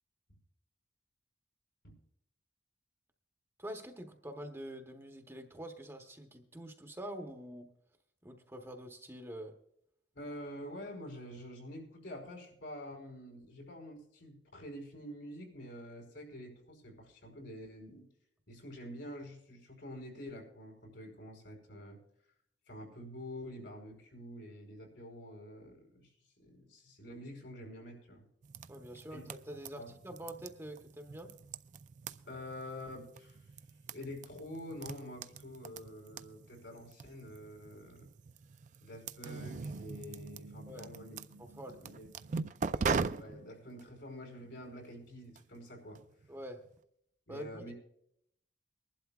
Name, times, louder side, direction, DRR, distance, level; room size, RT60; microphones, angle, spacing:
voice 1, 3.6-7.7 8.2-9.5 28.7-31.3 40.7-40.9 41.4-41.8 46.3-46.6 47.3-47.7, right 1 dB, 15° right, 4 dB, 0.9 m, -46 dB
voice 2, 10.1-18.1 18.5-22.0 22.7-26.1 26.4-28.3 29.1-29.2 29.7-29.9 32.2-33.4 33.8-38.1 38.8-41.2 41.5-42.4 43.0-46.0 47.3-47.7, left 1 dB, 85° left, 1 dB, 5.0 m, -47 dB
sound 1, 28.4-46.7, right 5 dB, 40° right, 0.4 m, -42 dB
sound 2, 39.3-43.9, right 2 dB, 85° right, 0.8 m, -51 dB
23.0 x 11.5 x 2.3 m, 0.73 s
head